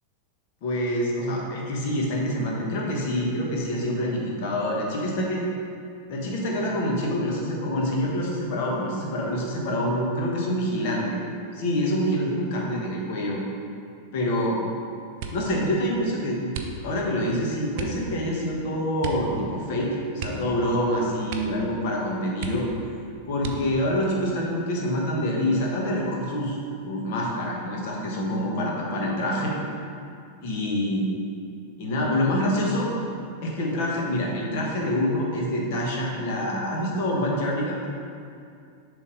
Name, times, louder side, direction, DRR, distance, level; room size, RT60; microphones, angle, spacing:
voice 1, 0.6-5.4 6.1-11.2 11.5-13.4 14.1-14.6 15.3-16.5 16.8-22.7 23.3-26.6 26.8-29.5 30.4-31.1 31.8-32.9 33.4-37.8, equal, 50° left, -2 dB, 1.2 m, -26 dB
sound 1, 15.2-15.6 16.5-17.1 17.7-18.1 19.0-19.3 19.6-19.7 20.1-20.9 21.2-21.7 22.0-22.1 22.4-22.9 23.4-23.9 24.6-25.3 25.6-26.0, right 5 dB, 50° right, 0.5 m, -36 dB
6.9 x 3.5 x 5.2 m, 2.4 s
figure-of-eight pair, 90°, 0 cm